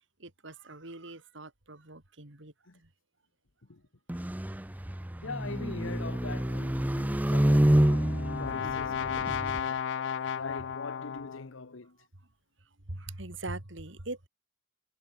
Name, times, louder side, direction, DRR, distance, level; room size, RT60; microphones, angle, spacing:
voice 1, 0.2-2.5 2.8-2.9 12.9-14.3, right 2 dB, 70° right, 2.8 m, -42 dB
sound 1, 4.1-9.6, right 1 dB, 10° right, 0.5 m, -27 dB
voice 2, 5.2-9.9 10.4-12.0, left 3 dB, 80° left, 1.2 m, -43 dB
Brass instrument, 7.4-11.6, left 7 dB, 65° left, 0.4 m, -34 dB
head